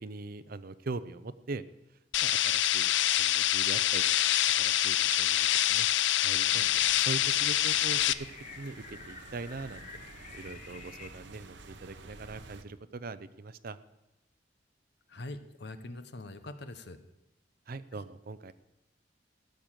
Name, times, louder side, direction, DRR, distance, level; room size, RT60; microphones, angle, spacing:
voice 1, 0.0-1.6 2.2-4.0 4.6-5.9 6.2-8.1 8.6-9.8 10.3-13.8 17.7-18.5, right 3 dB, 55° right, 14 dB, 0.6 m, -41 dB
sound 1, 2.1-8.1, left 12 dB, 85° left, 0.5 m, -26 dB
sound 2, 6.2-11.1, left 5 dB, 45° left, 1.1 m, -49 dB
sound 3, 6.4-12.6, right 3 dB, 80° right, 1.0 m, -51 dB
voice 2, 15.1-17.0 17.9-18.0, left 2 dB, 65° left, 10 dB, 1.0 m, -43 dB
15.5 x 6.8 x 7.5 m, 0.93 s
head